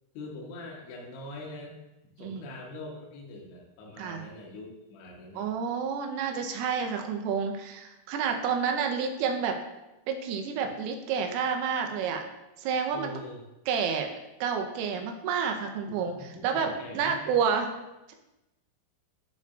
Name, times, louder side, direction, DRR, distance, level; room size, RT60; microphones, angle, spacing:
voice 1, 0.1-1.8 2.2-5.5 12.9-13.4 15.9-17.3, left 2 dB, 75° left, -1 dB, 3.2 m, -43 dB
voice 2, 5.4-9.6 10.1-12.2 12.6-13.1 13.7-14.1 14.4-17.7 18.1-18.2, right 6 dB, 85° right, 4 dB, 3.4 m, -29 dB
12.5 x 4.6 x 2.4 m, 0.98 s
omnidirectional pair, 5.8 m